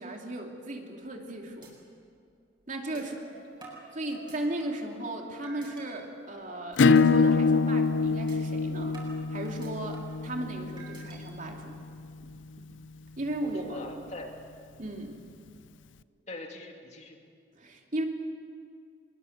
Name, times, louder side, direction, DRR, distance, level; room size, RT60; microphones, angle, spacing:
voice 1, 0.0-1.7 2.7-3.2 3.9-9.0 9.3-11.7 13.2-13.8 14.8-15.2 17.6-18.0, right 1 dB, 45° right, 1 dB, 2.9 m, -36 dB
sound 1, 1.0-1.3 1.6-1.7 2.1-2.2 2.9-3.0 3.6-4.9 5.4-5.9 6.3-6.5 6.9-7.1 7.5-7.6 8.3-8.4 8.9-10.2 10.8-11.2, right 3 dB, 25° right, 7.2 m, -50 dB
sound 2, 3.1-9.1, equal, 55° left, 4.5 m, -52 dB
Acoustic guitar / Strum, 6.8-12.0, left 4 dB, 90° left, 0.6 m, -25 dB
voice 2, 13.4-14.4 16.3-17.2, left 2 dB, 40° left, 2 dB, 2.6 m, -42 dB
24.5 x 22.0 x 8.1 m, 2.3 s
head